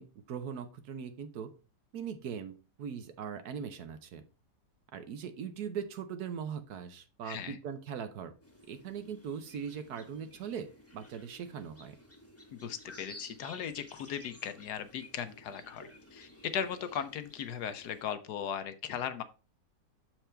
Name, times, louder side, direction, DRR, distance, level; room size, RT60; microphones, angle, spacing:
voice 1, 0.0-1.5 1.9-4.2 4.9-8.3 8.7-12.0, right 7 dB, 65° right, 10 dB, 1.2 m, -40 dB
voice 2, 7.2-7.6 12.5-19.2, left 8 dB, 70° left, 11 dB, 1.2 m, -38 dB
sound 1, 8.4-18.0, left 1 dB, 10° left, 1.0 m, -54 dB
6.9 x 4.6 x 4.3 m, 0.33 s
omnidirectional pair, 1.9 m